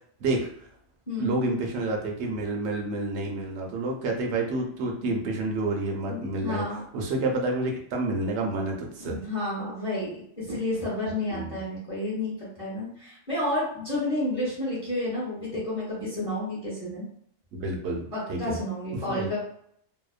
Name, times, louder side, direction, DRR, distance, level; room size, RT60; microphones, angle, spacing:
voice 1, 1.2-6.6 6.9-9.2 11.3-11.6 17.5-18.6 19.1-19.3, right 2 dB, 65° right, 0 dB, 0.8 m, -29 dB
voice 2, 6.1-6.8 9.0-17.0 18.1-19.4, left 1 dB, 30° left, -8 dB, 1.0 m, -31 dB
2.8 x 2.0 x 2.3 m, 0.66 s
omnidirectional pair, 1.4 m